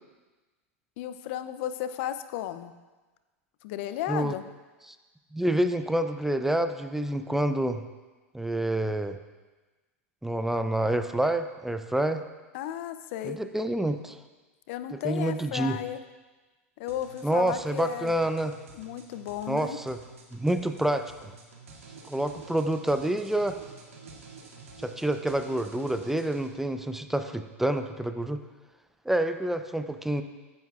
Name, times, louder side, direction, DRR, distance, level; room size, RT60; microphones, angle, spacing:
voice 1, 1.0-2.7 3.6-4.4 12.5-13.4 14.7-16.0 16.8-18.1 18.7-19.8, left 11 dB, 60° left, 11 dB, 0.6 m, -34 dB
voice 2, 5.3-7.8 8.3-9.2 10.2-12.2 13.2-14.2 14.9-15.8 17.2-18.5 19.5-20.0 20.3-21.0 22.1-23.6 24.8-28.4 29.1-30.2, right 1 dB, 5° right, 8 dB, 0.5 m, -28 dB
sound 1, 16.9-26.5, right 4 dB, 80° right, 1.9 m, -49 dB
14.5 x 9.6 x 2.4 m, 1.2 s
hypercardioid pair, 100°, 7 cm